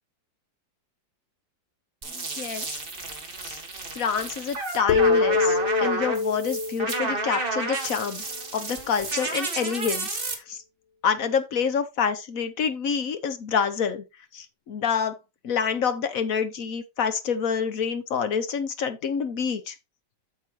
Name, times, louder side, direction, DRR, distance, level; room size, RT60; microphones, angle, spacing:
sound 1, 2.0-10.3, right 3 dB, 30° right, 1.7 m, -31 dB
voice 1, 2.4-2.8 3.4-3.6 3.9-8.2 8.5-10.1 10.5-10.6 11.0-14.0 14.3-15.2 15.4-19.7, left 6 dB, 55° left, 1.1 m, -27 dB
sound 2, 4.9-8.4, left 4 dB, 85° left, 1.5 m, -25 dB
8.4 x 7.0 x 3.0 m
omnidirectional pair, 2.1 m